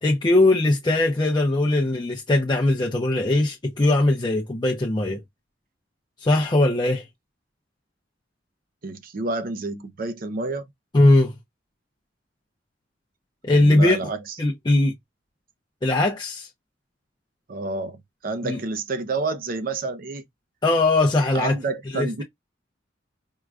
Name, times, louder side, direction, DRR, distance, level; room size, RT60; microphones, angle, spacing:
voice 1, 0.0-5.2 6.2-7.1 10.9-11.3 13.4-14.0 14.4-14.9 15.8-16.5 18.4-18.6 20.6-21.6 21.9-22.2, left 2 dB, 25° left, 0.5 m, -20 dB
voice 2, 8.8-10.6 13.5-14.4 17.5-20.2 21.3-22.2, right 3 dB, 50° right, 0.5 m, -29 dB
4.6 x 2.2 x 2.3 m
head